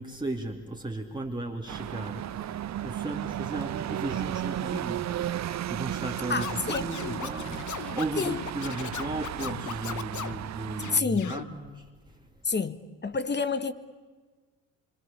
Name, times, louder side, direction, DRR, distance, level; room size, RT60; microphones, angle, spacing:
voice 1, 0.0-5.1 5.7-12.2, right 2 dB, 10° right, 1 dB, 2.4 m, -36 dB
sound 1, 1.7-11.0, right 11 dB, 45° right, 0.7 m, -34 dB
voice 2, 6.3-6.9 8.2-8.4 10.9-11.3 12.4-12.8 13.0-13.7, left 4 dB, 25° left, 11 dB, 1.7 m, -28 dB
Scratching (performance technique), 6.4-10.4 10.8-11.4, left 10 dB, 45° left, 1.1 m, -38 dB
25.5 x 25.0 x 6.8 m, 1.4 s
hypercardioid pair, 60°, 40 cm